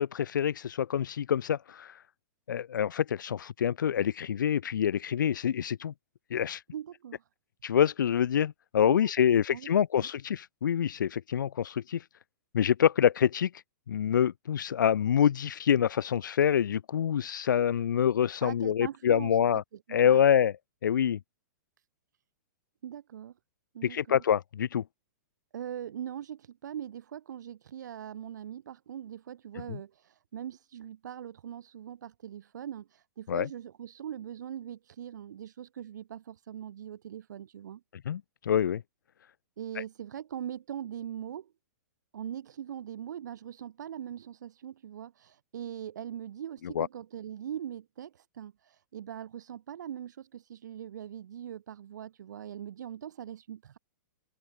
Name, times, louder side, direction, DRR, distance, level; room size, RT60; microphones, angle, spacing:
voice 1, 0.0-2.0 2.5-5.9 6.3-6.6 7.6-12.0 12.5-13.5 13.9-19.6 19.9-20.5 20.8-21.2 23.8-24.8 29.7-29.8 33.3-33.5 38.1-38.8 39.8-39.9 46.8-46.9, left 9 dB, 85° left, 1.6 m, -26 dB
voice 2, 6.7-7.2 8.8-9.7 10.0-10.1 18.4-19.6 19.9-20.2 22.8-23.3 23.7-24.2 25.5-37.8 39.6-41.5 42.1-53.8, right 10 dB, 70° right, 6.6 m, -41 dB
hypercardioid pair, 170°, 10 cm